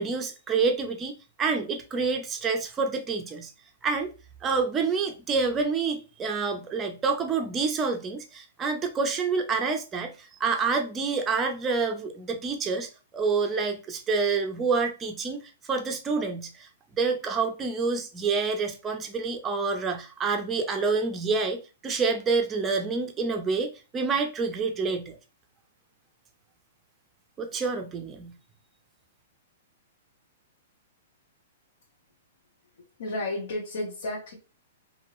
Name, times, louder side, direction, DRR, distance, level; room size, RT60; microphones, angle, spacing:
voice 1, 0.0-3.5 3.8-4.1 4.4-15.4 15.7-16.7 16.9-25.2 27.4-28.3, right 4 dB, 15° right, 0.5 m, -28 dB
voice 2, 33.0-34.3, left 1 dB, 70° left, 0.9 m, -32 dB
2.8 x 2.6 x 3.0 m
hypercardioid pair, 155°, 0 cm